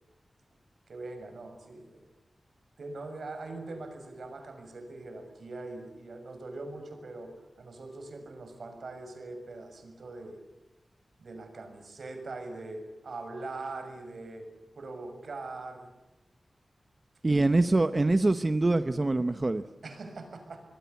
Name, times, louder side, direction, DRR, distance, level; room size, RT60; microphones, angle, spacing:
voice 1, 0.9-2.1 2.8-10.4 11.2-14.5 14.7-15.9 17.5-17.6 19.8-20.6, right 2 dB, 75° right, 5 dB, 6.7 m, -42 dB
voice 2, 17.2-19.6, right 2 dB, 30° right, 10 dB, 0.8 m, -24 dB
27.0 x 22.0 x 8.4 m, 1.0 s
wide cardioid pair, 120°, 0 cm